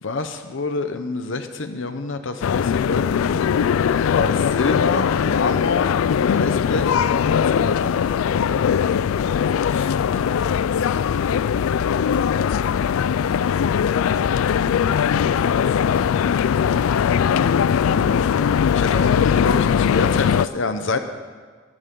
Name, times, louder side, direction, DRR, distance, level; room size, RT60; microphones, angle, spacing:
voice 1, 0.0-5.9 6.2-8.0 9.7-9.9 10.8-11.2 17.8-18.3 18.7-21.0, left 3 dB, 65° left, 8 dB, 0.8 m, -27 dB
sound 1, 2.4-20.5, left 7 dB, 85° left, 0.3 m, -20 dB
voice 2, 11.9-13.5 14.6-17.2, equal, 10° right, -6 dB, 5.9 m, -44 dB
24.0 x 12.5 x 3.8 m, 1.5 s
head